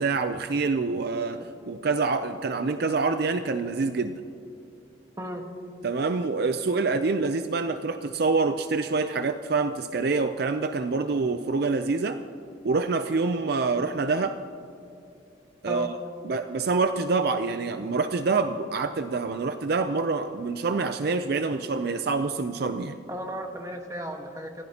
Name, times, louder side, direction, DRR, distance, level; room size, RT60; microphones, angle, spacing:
voice 1, 0.0-1.4 1.7-4.2 5.8-12.2 12.6-14.4 15.6-15.9 16.2-23.0, right 4 dB, 55° right, 9 dB, 0.5 m, -26 dB
voice 2, 5.2-5.5 15.7-15.9 23.1-24.6, equal, 15° right, 3 dB, 1.4 m, -35 dB
26.5 x 15.5 x 2.9 m, 2.6 s
head